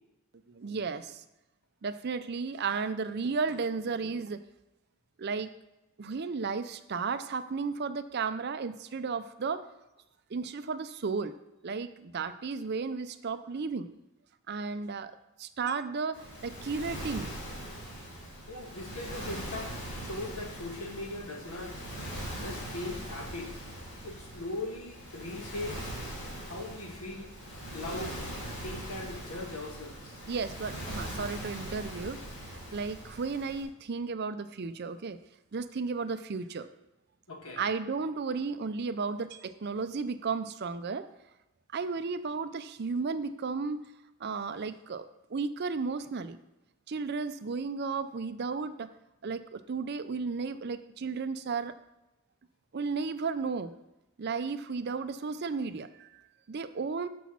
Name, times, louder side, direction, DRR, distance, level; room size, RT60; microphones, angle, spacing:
voice 1, 0.5-1.2 1.8-4.4 5.2-5.5 6.0-9.6 10.3-11.4 11.6-13.9 14.5-15.1 15.4-17.3 30.3-32.2 32.5-35.2 35.5-36.7 37.6-41.1 41.7-43.8 44.2-46.4 46.9-48.9 49.2-51.8 52.7-53.7 54.2-56.1 56.5-57.1, right 4 dB, 45° right, 11 dB, 0.5 m, -34 dB
Waves surf, 16.1-33.6, right 1 dB, 55° left, 3.6 m, -41 dB
voice 2, 18.5-21.8 22.3-23.5 24.0-25.9 26.5-27.3 27.7-28.2 28.6-30.2 37.3-37.6, left 2 dB, 80° left, 2 dB, 1.6 m, -39 dB
7.0 x 6.1 x 6.0 m, 0.94 s
head